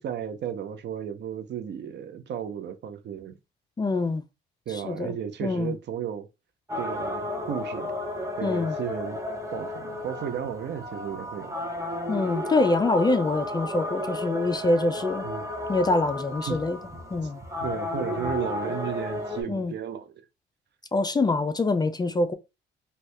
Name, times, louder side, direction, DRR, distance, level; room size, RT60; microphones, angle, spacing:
voice 1, 0.0-3.4 4.7-6.3 6.8-7.9 8.4-9.2 9.5-11.5 15.2-15.5 16.4-16.6 17.2-17.3 17.6-20.1, right 9 dB, 60° right, 0.6 m, -34 dB
voice 2, 3.8-4.2 4.7-5.1 5.4-5.7 8.4-8.8 12.1-15.3 15.7-16.8 17.1-17.4 19.5-19.7 20.9-22.3, left 2 dB, 20° left, 0.3 m, -25 dB
sound 1, 6.7-19.4, left 1 dB, 15° right, 0.8 m, -33 dB
2.7 x 2.3 x 3.2 m
cardioid pair, 90°, 20 cm